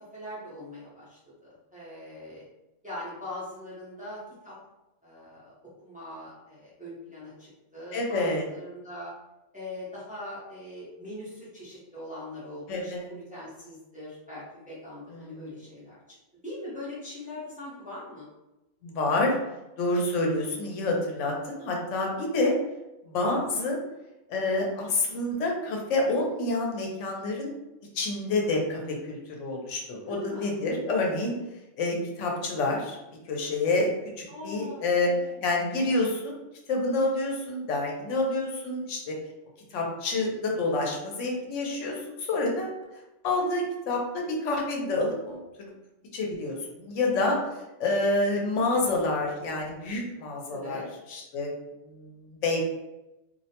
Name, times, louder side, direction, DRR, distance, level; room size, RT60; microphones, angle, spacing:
voice 1, 0.1-2.4 2.8-4.5 5.0-5.5 5.8-9.1 9.5-16.2 16.4-18.2 30.0-30.6 34.3-35.6 50.5-50.9, left 1 dB, 10° right, -9 dB, 0.6 m, -41 dB
voice 2, 7.9-8.4 12.7-13.1 15.1-15.5 18.8-19.3 19.8-22.5 23.1-23.8 24.3-27.5 27.9-31.3 31.8-33.0 33.3-33.9 34.2-35.1 35.4-36.3 36.7-39.1 39.7-42.8 43.2-45.4 46.1-47.4 47.8-51.5 51.9-52.6, left 2 dB, 90° left, 0 dB, 1.0 m, -28 dB
2.4 x 2.1 x 2.8 m, 0.97 s
omnidirectional pair, 1.2 m